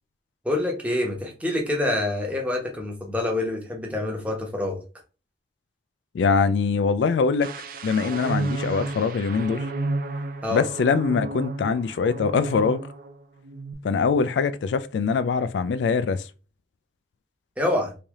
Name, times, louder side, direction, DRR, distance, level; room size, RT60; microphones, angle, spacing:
voice 1, 0.4-4.8 10.4-10.6 17.6-17.9, left 1 dB, 10° right, 0.9 m, -26 dB
voice 2, 6.1-7.5 7.8-9.7 10.5-12.8 13.8-16.3, left 5 dB, 80° left, 0.3 m, -23 dB
sound 1, 7.4-13.1 13.4-13.7, right 2 dB, 50° right, 0.5 m, -32 dB
3.2 x 2.7 x 3.5 m
head